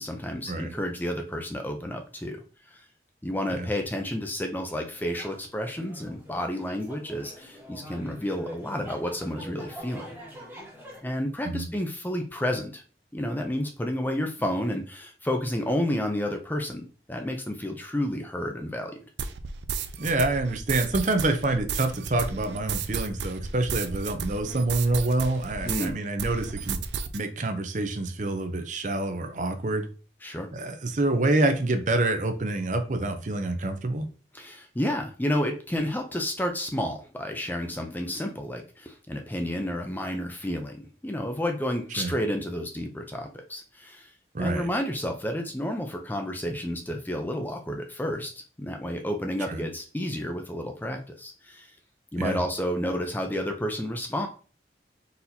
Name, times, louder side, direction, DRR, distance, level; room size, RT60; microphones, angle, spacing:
voice 1, 0.0-2.4 2.7-2.8 3.2-10.1 11.0-12.8 13.1-19.0 25.6-26.0 30.2-30.5 34.3-44.1 44.4-48.3 48.6-51.7 52.1-54.3, equal, 10° left, 4 dB, 0.5 m, -31 dB
sound 1, 4.9-11.0, equal, 10° right, 1.1 m, -44 dB
sound 2, 19.2-25.9 26.2-27.2, right 6 dB, 85° right, 0.4 m, -33 dB
voice 2, 20.0-26.8 27.1-29.9 30.5-34.1 42.0-42.1 44.3-44.7 49.5-49.6 52.2-52.4, right 2 dB, 45° right, 7 dB, 0.6 m, -27 dB
4.2 x 4.1 x 2.7 m, 0.37 s
head